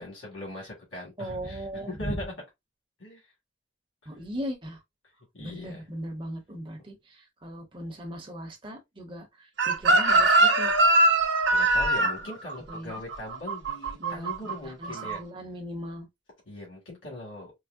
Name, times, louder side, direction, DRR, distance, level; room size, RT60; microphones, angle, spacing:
voice 1, 0.0-2.3 3.0-3.2 5.3-5.8 11.5-15.2 16.5-17.5, left 1 dB, 80° left, 2.1 m, -40 dB
voice 2, 1.2-2.2 4.1-4.8 5.4-10.7 12.2-12.3 12.7-13.0 14.0-16.1, equal, 25° right, 0.9 m, -38 dB
Chicken rooster, 9.6-14.5 14.8-15.2, right 2 dB, 60° right, 0.7 m, -22 dB
4.6 x 2.0 x 2.5 m
head